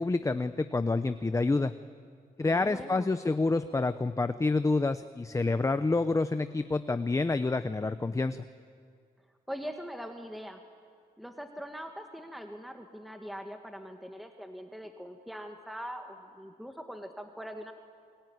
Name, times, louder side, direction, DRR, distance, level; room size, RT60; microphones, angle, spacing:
voice 1, 0.0-1.7 2.4-8.4, left 3 dB, 20° left, 11 dB, 0.7 m, -28 dB
voice 2, 2.4-3.1 9.5-10.6 11.2-17.7, equal, ahead, 4 dB, 1.7 m, -42 dB
29.0 x 22.0 x 9.6 m, 2.2 s
cardioid pair, 105°, 16 cm